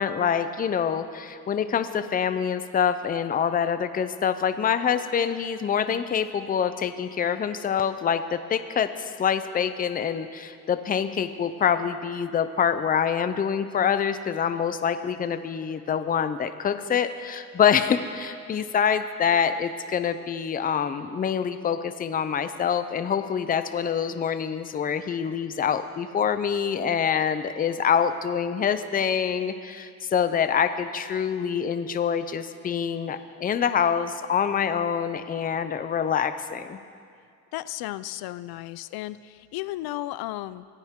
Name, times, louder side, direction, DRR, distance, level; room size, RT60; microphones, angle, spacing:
voice 1, 0.0-36.8, left 7 dB, 25° left, 10 dB, 0.5 m, -26 dB
voice 2, 37.5-40.7, left 15 dB, 85° left, 16 dB, 0.5 m, -34 dB
24.0 x 15.5 x 3.7 m, 2.2 s
cardioid pair, 165°, 36 cm